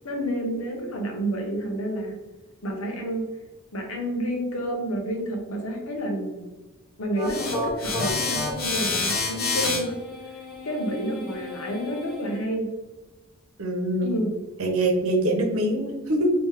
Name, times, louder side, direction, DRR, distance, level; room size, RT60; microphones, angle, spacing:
voice 1, 0.0-2.2 2.6-3.3 3.7-6.5 7.0-10.0 10.6-12.7 14.0-14.3, equal, 80° left, 2 dB, 0.9 m, -29 dB
sound 1, 7.2-12.3, left 3 dB, 45° left, 0.8 m, -29 dB
voice 2, 13.6-14.2 14.6-16.3, right 1 dB, 90° right, 2 dB, 0.9 m, -24 dB
3.6 x 3.0 x 3.2 m, 1.2 s
head